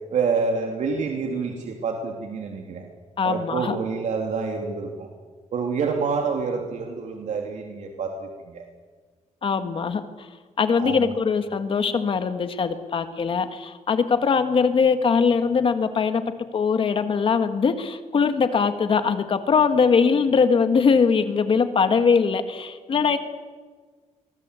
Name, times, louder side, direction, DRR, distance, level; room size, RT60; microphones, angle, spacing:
voice 1, 0.1-2.8 3.2-5.1 5.5-8.6 10.8-11.1, right 5 dB, 70° right, 2 dB, 3.2 m, -27 dB
voice 2, 3.2-3.8 9.4-10.0 10.6-16.2 16.5-23.2, left 5 dB, 45° left, 9 dB, 1.7 m, -21 dB
30.0 x 24.0 x 8.3 m, 1.5 s
wide cardioid pair, 165°, 13 cm